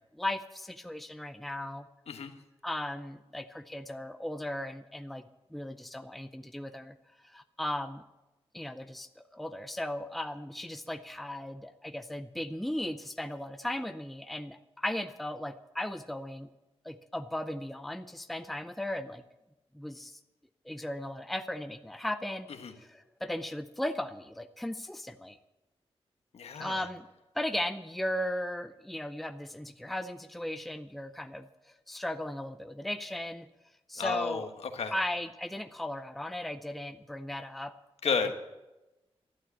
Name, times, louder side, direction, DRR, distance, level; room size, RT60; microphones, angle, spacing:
voice 1, 0.0-1.9 2.6-5.2 5.5-7.0 7.2-8.0 8.5-16.5 16.8-19.2 19.7-20.2 20.7-22.5 22.8-25.4 26.6-27.1 27.3-31.5 31.9-33.5 33.9-34.5 34.9-37.7 38.0-38.3, left 1 dB, ahead, 9 dB, 0.5 m, -36 dB
voice 2, 26.3-26.8 34.0-34.9 38.0-38.3, left 5 dB, 75° left, 7 dB, 1.3 m, -32 dB
12.5 x 11.5 x 8.3 m, 1.0 s
wide cardioid pair, 180°, 11 cm